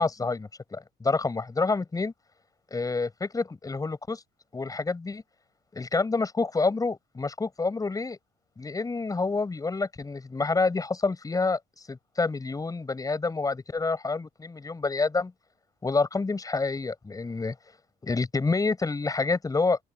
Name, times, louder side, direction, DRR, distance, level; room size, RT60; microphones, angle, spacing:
voice 1, 0.0-2.1 2.7-4.2 4.5-5.2 5.7-8.2 8.6-11.6 11.9-15.3 15.8-17.5 18.0-19.8, left 3 dB, 20° left, 7.8 m, -28 dB
open air
cardioid pair, 110°, 17 cm